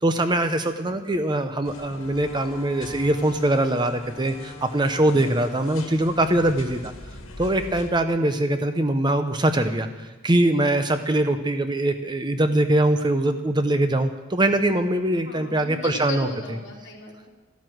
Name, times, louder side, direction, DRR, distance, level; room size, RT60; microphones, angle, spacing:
voice 1, 0.0-6.9 7.4-16.3, right 1 dB, 20° right, 9 dB, 0.7 m, -22 dB
sound 1, 1.6-7.9, left 2 dB, 85° left, 2.1 m, -42 dB
Wind instrument woodwind instrument, 1.6-6.1, left 2 dB, 25° left, 2.6 m, -43 dB
voice 2, 15.3-17.3, left 3 dB, 60° left, -3 dB, 3.7 m, -36 dB
12.5 x 12.0 x 7.8 m, 1.3 s
head